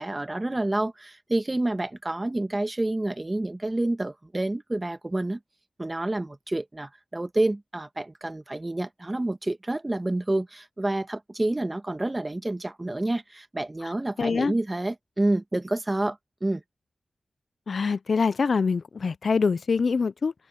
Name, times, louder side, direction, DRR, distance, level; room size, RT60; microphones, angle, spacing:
voice 1, 0.0-5.4 5.8-16.6, right 2 dB, 25° right, 1.5 m, -28 dB
voice 2, 14.2-14.5 17.7-20.3, left 5 dB, 65° left, 0.3 m, -24 dB
cardioid pair, 60°, 0 cm